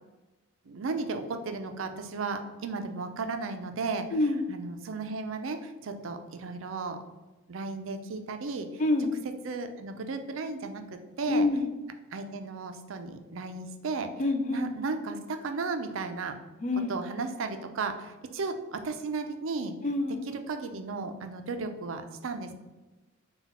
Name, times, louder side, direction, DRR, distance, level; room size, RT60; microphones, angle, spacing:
voice 1, 0.7-4.1 4.5-7.0 7.5-8.7 9.4-10.8 11.2-11.5 12.1-14.1 14.5-16.3 16.9-19.7 20.3-22.5, right 4 dB, 70° right, 7 dB, 0.4 m, -34 dB
voice 2, 4.1-4.4 8.8-9.1 11.3-11.7 14.2-14.6 16.6-16.9 19.8-20.2, left 2 dB, 35° left, 6 dB, 0.3 m, -26 dB
4.0 x 2.3 x 4.1 m, 1.1 s
head